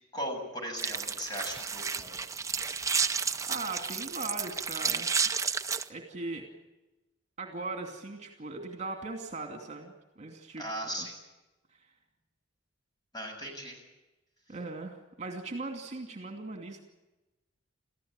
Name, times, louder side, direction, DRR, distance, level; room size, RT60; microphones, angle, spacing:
voice 1, 0.1-2.2 10.6-11.2 13.1-13.8, equal, 20° left, 2 dB, 7.2 m, -38 dB
sound 1, 0.8-5.8, right 5 dB, 15° right, 0.7 m, -31 dB
voice 2, 3.5-5.2 5.9-6.5 7.4-10.7 11.0-11.1 14.5-16.8, right 3 dB, 35° right, 3 dB, 2.6 m, -39 dB
29.0 x 15.0 x 8.9 m, 1.1 s
head